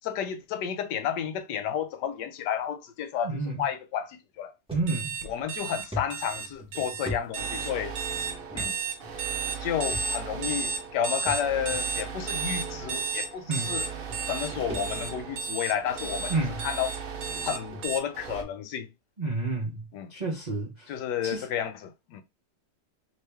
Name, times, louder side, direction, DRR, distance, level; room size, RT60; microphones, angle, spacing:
voice 1, 0.0-4.5 5.2-7.9 8.5-8.8 9.6-13.8 14.3-16.3 16.6-17.0 17.4-18.9 19.9-20.1 20.9-22.2, left 8 dB, 75° left, 1.2 m, -31 dB
voice 2, 3.2-3.6 4.7-5.1 13.5-13.8 16.3-16.6 19.2-21.0 21.2-21.5, right 3 dB, 40° right, 0.6 m, -30 dB
sound 1, 4.7-4.9 5.3-5.4 5.9-8.0 8.5-8.7 9.0-9.1 9.9-10.4 11.3-11.8 12.7-12.8 13.8-13.9 14.1-15.3 15.7-16.0 16.8-16.9 17.4-17.5 17.7-17.8 18.3-18.5, left 1 dB, 5° right, 0.9 m, -39 dB
sound 2, 4.9-18.0, right 5 dB, 75° right, 1.1 m, -33 dB
sound 3, 7.3-18.4, right 6 dB, 90° right, 0.5 m, -39 dB
3.0 x 2.9 x 3.4 m
omnidirectional pair, 1.9 m